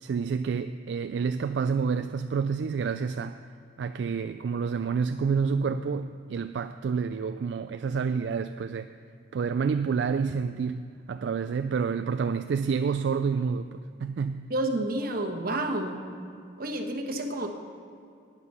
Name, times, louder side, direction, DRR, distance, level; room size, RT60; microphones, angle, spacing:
voice 1, 0.0-3.4 3.8-8.9 9.3-14.5, right 5 dB, 75° right, 9 dB, 0.3 m, -29 dB
voice 2, 14.5-16.0 16.6-17.5, right 1 dB, 55° right, 4 dB, 1.3 m, -29 dB
12.0 x 9.6 x 5.6 m, 2.5 s
head